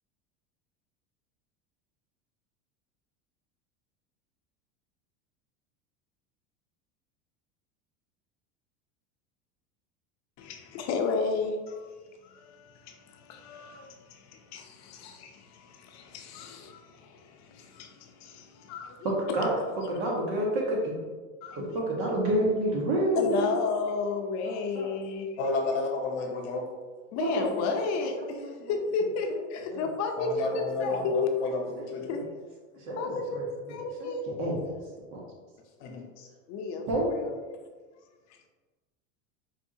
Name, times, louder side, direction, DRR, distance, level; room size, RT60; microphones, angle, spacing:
voice 1, 10.4-11.9 12.2-19.1 21.4-21.8 23.2-25.3 27.1-31.3 32.1-32.2 33.0-34.2 36.5-37.4, left 4 dB, 50° left, 4 dB, 0.6 m, -33 dB
voice 2, 19.0-20.9 21.5-23.5 24.4-24.9 27.2-27.8 28.2-28.8 29.3-29.4 29.7-29.8 30.5-30.6 30.9-31.0 32.1-32.2 32.8-34.1 34.4-34.6 35.1-35.2 36.9-37.1, right 1 dB, 75° right, -2 dB, 1.4 m, -29 dB
voice 3, 25.4-26.7 30.2-32.1 35.8-36.3, left 3 dB, 75° left, 1 dB, 1.0 m, -31 dB
4.6 x 2.6 x 2.7 m, 1.4 s
supercardioid pair, 105°, 36 cm